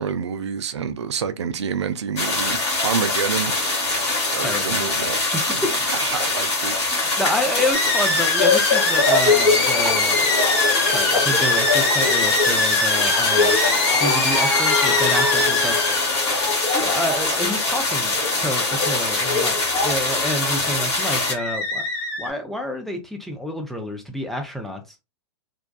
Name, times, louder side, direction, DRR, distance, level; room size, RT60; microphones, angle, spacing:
voice 1, 0.0-3.6 4.3-5.2 5.5-5.7 5.9-6.8, right 6 dB, 70° right, 0.4 m, -27 dB
sound 1, 2.2-21.3, left 2 dB, 65° left, 1.4 m, -23 dB
voice 2, 4.4-4.8 5.3-5.7 6.9-10.3 10.8-13.6 14.0-15.8 16.7-21.8 22.2-25.0, left 1 dB, ahead, 0.5 m, -28 dB
sound 2, 7.7-16.3 21.0-22.3, left 3 dB, 40° left, 1.2 m, -23 dB
sound 3, 8.4-20.9, left 4 dB, 80° left, 1.2 m, -25 dB
2.6 x 2.2 x 2.2 m
figure-of-eight pair, 110°, 15 cm